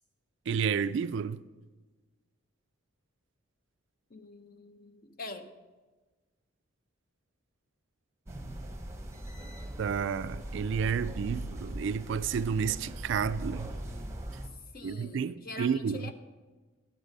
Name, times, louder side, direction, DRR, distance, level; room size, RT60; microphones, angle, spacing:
voice 1, 0.5-1.4 9.8-13.7 14.8-16.1, right 6 dB, 60° right, 0.3 m, -31 dB
voice 2, 4.1-5.5 14.7-16.1, left 3 dB, 45° left, 0.7 m, -44 dB
sound 1, 8.3-14.5, right 1 dB, 15° right, 0.8 m, -40 dB
10.0 x 7.2 x 5.1 m
head